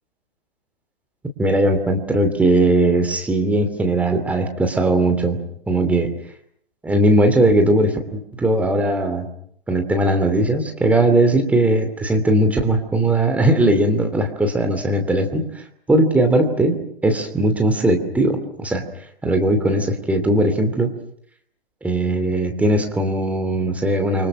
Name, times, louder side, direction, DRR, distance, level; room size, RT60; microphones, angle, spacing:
voice 1, 1.4-5.4 5.7-6.1 6.8-9.3 9.7-15.6 15.9-16.8 17.0-18.8 19.2-20.9 21.8-24.3, right 1 dB, 5° right, 5 dB, 2.7 m, -19 dB
29.5 x 24.5 x 6.4 m, 0.69 s
figure-of-eight pair, 125°, 31 cm